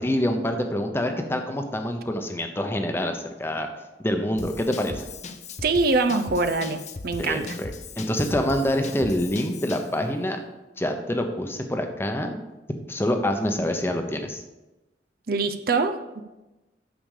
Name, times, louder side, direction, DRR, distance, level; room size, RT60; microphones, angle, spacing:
voice 1, 0.0-3.7 4.0-5.0 7.2-7.7 8.0-10.4 10.8-12.4 12.9-14.4, left 1 dB, 15° left, 5 dB, 0.9 m, -26 dB
Drum kit / Drum, 4.4-10.0, left 3 dB, 40° left, 0.6 m, -38 dB
voice 2, 5.6-7.6 15.3-16.2, right 3 dB, 55° right, 8 dB, 0.6 m, -24 dB
9.0 x 6.8 x 5.0 m, 1.0 s
head